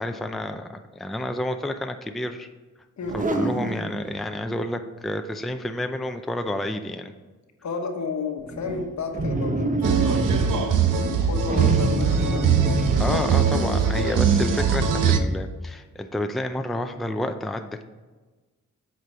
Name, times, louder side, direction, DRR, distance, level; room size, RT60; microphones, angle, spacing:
voice 1, 0.0-2.5 3.1-7.1 13.0-17.8, left 1 dB, ahead, 6 dB, 0.5 m, -30 dB
sound 1, 3.0-4.2 8.5-13.5, right 2 dB, 25° right, 0.8 m, -27 dB
voice 2, 7.6-10.7 11.2-12.7 13.1-14.3, left 4 dB, 60° left, 4 dB, 1.2 m, -33 dB
sound 2, 9.8-15.2, right 6 dB, 75° right, 0.7 m, -21 dB
8.1 x 4.5 x 4.7 m, 1.3 s
cardioid pair, 65°, 32 cm